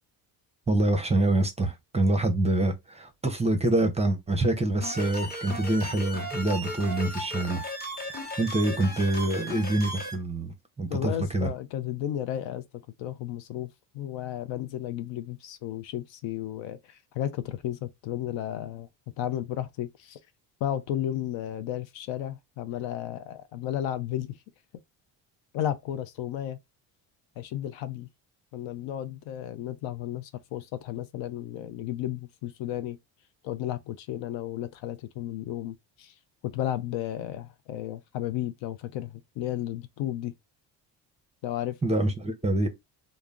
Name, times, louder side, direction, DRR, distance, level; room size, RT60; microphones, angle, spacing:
voice 1, 0.7-7.6 8.4-11.5 41.8-42.7, right 2 dB, 15° right, 0.6 m, -26 dB
sound 1, 4.8-10.1, equal, 20° left, 0.9 m, -36 dB
voice 2, 10.9-12.6 13.0-13.7 13.9-18.9 19.2-20.2 20.6-24.4 25.5-26.6 27.4-28.1 28.5-33.0 33.4-36.1 36.4-40.3 41.4-41.7, left 11 dB, 70° left, 0.5 m, -33 dB
2.1 x 2.0 x 3.6 m
supercardioid pair, 75°, 47 cm